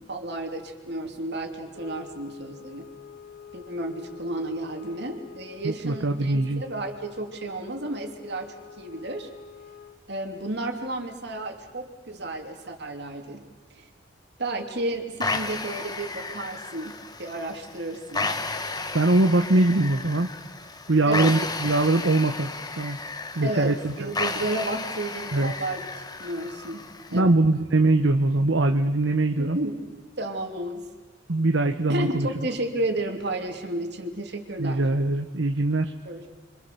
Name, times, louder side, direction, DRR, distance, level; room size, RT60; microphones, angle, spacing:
voice 1, 0.0-2.9 3.5-9.3 10.1-13.4 13.7-13.9 14.4-18.4 19.3-19.5 21.1-21.4 23.4-25.9 26.2-27.4 29.4-29.9 30.2-30.8 31.9-34.9 36.0-36.3, right 1 dB, 60° right, 3 dB, 2.9 m, -32 dB
sound 1, 1.7-10.1, left 7 dB, 60° left, 1.7 m, -47 dB
voice 2, 5.6-6.6 18.9-20.3 20.9-22.5 22.8-23.0 23.4-23.9 25.3-25.5 27.1-29.6 31.3-32.3 34.6-35.9, right 2 dB, 85° right, 6 dB, 1.1 m, -22 dB
sound 2, 15.2-27.2, left 3 dB, 20° left, 1.3 m, -33 dB
28.5 x 25.0 x 6.9 m, 1.3 s
head